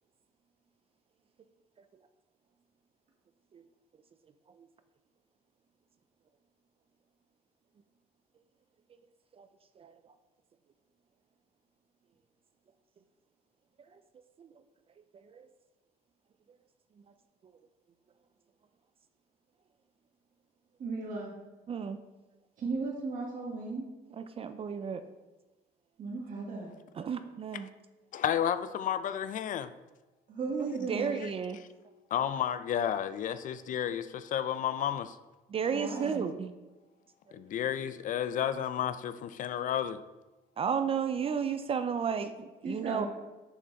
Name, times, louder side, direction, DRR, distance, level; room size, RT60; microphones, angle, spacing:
voice 1, 20.8-21.3 22.6-23.8 26.0-26.7 30.3-31.1 35.7-36.2 42.6-43.1, right 3 dB, 50° right, -3 dB, 1.6 m, -36 dB
voice 2, 21.7-22.0 24.2-25.0 27.0-27.7 30.6-31.6 35.5-36.5 40.6-43.0, right 6 dB, 35° right, 10 dB, 0.4 m, -32 dB
voice 3, 28.1-29.7 31.2-31.3 31.6-31.7 32.1-35.2 37.3-40.0, left 9 dB, 50° left, 12 dB, 0.4 m, -32 dB
6.6 x 5.3 x 4.0 m, 1.1 s
cardioid pair, 110°, 17 cm